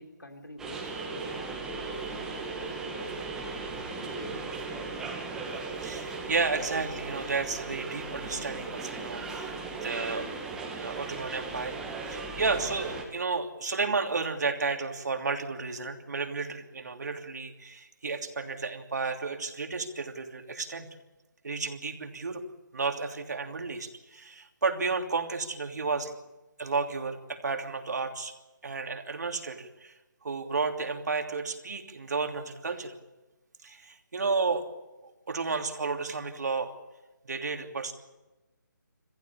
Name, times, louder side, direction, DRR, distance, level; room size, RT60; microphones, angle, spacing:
voice 1, 0.0-3.1 3.5-5.0, left 1 dB, 90° left, 5 dB, 4.0 m, -48 dB
sound 1, 0.6-13.0, right 3 dB, 5° right, 2.2 m, -37 dB
voice 2, 5.8-10.3 10.7-11.7 12.1-20.9 21.4-22.4 22.7-26.1 26.6-28.3 28.6-29.9 30.2-32.9 33.6-34.6 35.0-36.7 37.2-37.9, right 4 dB, 55° right, 4 dB, 3.0 m, -32 dB
27.0 x 15.5 x 8.6 m, 1.1 s
figure-of-eight pair, 160°, 11 cm